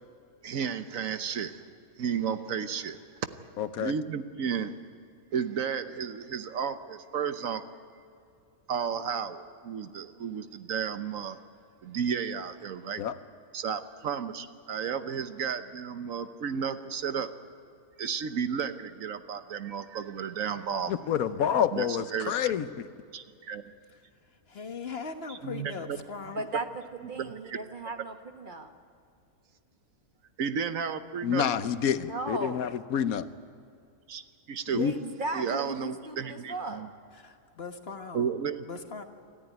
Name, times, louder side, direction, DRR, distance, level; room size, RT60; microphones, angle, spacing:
voice 1, 0.4-1.6 2.0-3.0 3.8-4.7 5.3-7.6 8.7-11.4 11.8-13.0 13.5-17.3 18.0-20.9 21.7-22.5 23.1-23.6 25.3-26.0 26.5-26.6 27.1-27.6 30.4-31.5 34.1-34.8 35.3-36.9 38.1-38.6, right 7 dB, 70° right, 10 dB, 1.3 m, -33 dB
voice 2, 3.6-3.9 13.0-13.2 20.9-22.9 31.2-33.3 34.7-34.9, left 8 dB, 80° left, 13 dB, 1.3 m, -28 dB
voice 3, 24.5-26.5 37.1-38.3 38.6-39.0, left 5 dB, 45° left, 6 dB, 1.5 m, -39 dB
voice 4, 27.1-28.7 31.9-32.6 34.8-36.9, right 2 dB, 35° right, 6 dB, 1.3 m, -36 dB
26.5 x 14.0 x 9.2 m, 2.4 s
omnidirectional pair, 1.5 m